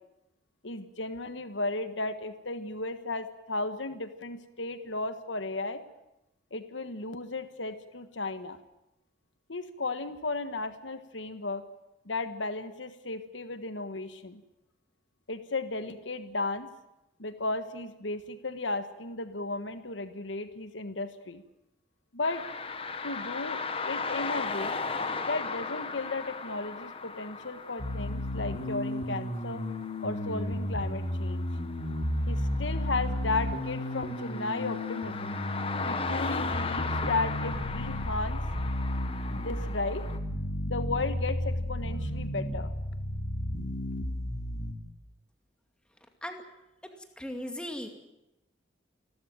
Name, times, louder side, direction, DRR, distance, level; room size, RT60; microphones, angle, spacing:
voice 1, 0.6-5.8 6.5-8.6 9.5-11.6 12.0-14.4 15.3-16.7 17.2-21.4 22.1-22.4 23.0-24.8 25.3-29.6 30.0-31.5 32.3-35.4 35.8-38.4 39.3-40.0 40.7-42.7, left 3 dB, 90° left, 10 dB, 1.5 m, -34 dB
sound 1, 22.2-40.2, left 4 dB, 30° left, 1.3 m, -37 dB
sound 2, 27.8-44.7, left 1 dB, 55° left, 3.3 m, -33 dB
voice 2, 47.2-47.9, left 1 dB, 5° left, 5 dB, 2.3 m, -37 dB
29.0 x 13.0 x 9.1 m, 0.90 s
head